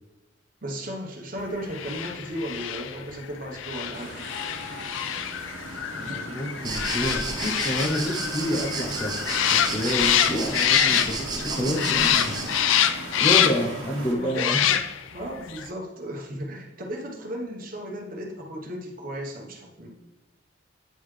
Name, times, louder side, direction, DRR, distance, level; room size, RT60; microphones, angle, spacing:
voice 1, 0.6-4.2 14.1-14.7 15.1-19.9, equal, 45° right, 0 dB, 1.0 m, -35 dB
sound 1, 1.7-11.5 11.8-13.8 14.3-15.2 15.5-15.6, left 10 dB, 70° left, 0.3 m, -25 dB
sound 2, 3.9-14.1, right 2 dB, 85° right, 1.2 m, -38 dB
voice 2, 6.0-9.2 9.5-12.5 13.2-14.8, equal, 25° left, 2 dB, 0.6 m, -29 dB
sound 3, 6.6-12.8, right 3 dB, 20° right, 0.7 m, -33 dB
9.0 x 3.9 x 3.2 m, 1.1 s
head